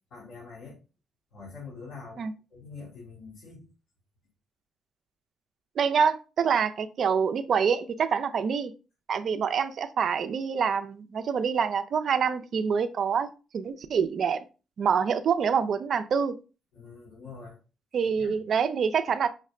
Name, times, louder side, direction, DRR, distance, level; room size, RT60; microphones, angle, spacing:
voice 1, 0.1-0.8 1.3-3.6 16.7-17.6 18.1-18.4, left 4 dB, 70° left, 2.5 m, -45 dB
voice 2, 5.8-8.7 9.1-14.4 14.8-16.4 17.9-19.3, right 6 dB, 55° right, 0.5 m, -26 dB
5.8 x 2.1 x 3.7 m
cardioid pair, 90°, 0 cm